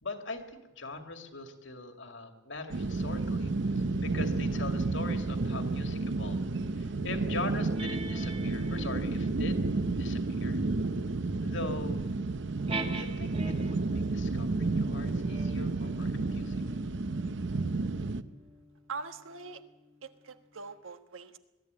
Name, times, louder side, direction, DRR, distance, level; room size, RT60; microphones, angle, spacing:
voice 1, 0.0-3.5 4.0-9.6 10.0-10.6 11.4-12.1 12.9-16.6, left 3 dB, 65° left, 6 dB, 2.3 m, -41 dB
sound 1, 2.7-18.2, right 3 dB, 60° right, 0.7 m, -31 dB
sound 2, 7.5-13.9 14.7-19.6, right 2 dB, 25° right, 1.5 m, -43 dB
voice 2, 18.9-19.6 20.0-21.4, right 4 dB, 80° right, 9 dB, 1.4 m, -42 dB
21.5 x 13.0 x 9.4 m, 1.1 s
head